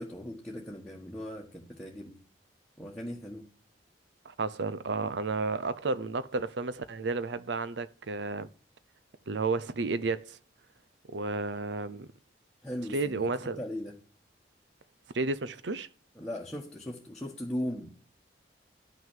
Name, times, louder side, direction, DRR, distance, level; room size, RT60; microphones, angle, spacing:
voice 1, 0.0-2.2 2.8-3.5 12.6-14.0 16.1-17.9, equal, 5° left, 1.4 m, -38 dB
voice 2, 4.3-8.5 9.3-10.4 11.1-12.1 12.9-13.6 15.1-15.9, right 3 dB, 80° right, 0.6 m, -32 dB
11.0 x 6.2 x 7.4 m
head